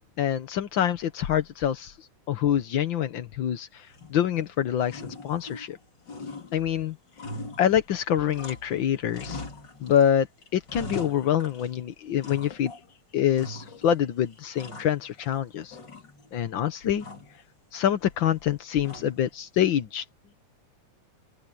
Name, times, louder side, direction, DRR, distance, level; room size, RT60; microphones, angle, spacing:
voice 1, 0.2-1.9 2.3-5.8 6.5-7.0 7.6-9.4 9.8-10.3 10.5-12.7 13.1-15.8 16.3-17.0 17.7-20.0, left 10 dB, 90° left, 1.0 m, -26 dB
sound 1, 3.9-4.5 4.9-5.8 6.1-8.8 9.1-10.1 10.4-11.8 12.2-12.9 13.4-14.0 14.3-15.4 15.7-16.4 17.0-17.4 18.8-19.3, left 2 dB, 35° left, 3.8 m, -42 dB
open air
omnidirectional pair, 3.7 m